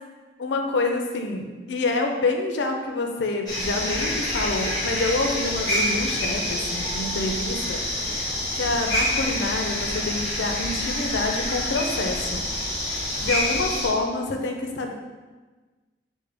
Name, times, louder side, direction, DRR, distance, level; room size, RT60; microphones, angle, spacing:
voice 1, 0.4-12.4 12.8-14.9, left 3 dB, 80° left, 3 dB, 0.5 m, -27 dB
sound 1, 3.5-13.9, left 1 dB, 20° left, 1.2 m, -27 dB
5.0 x 2.1 x 3.3 m, 1.3 s
head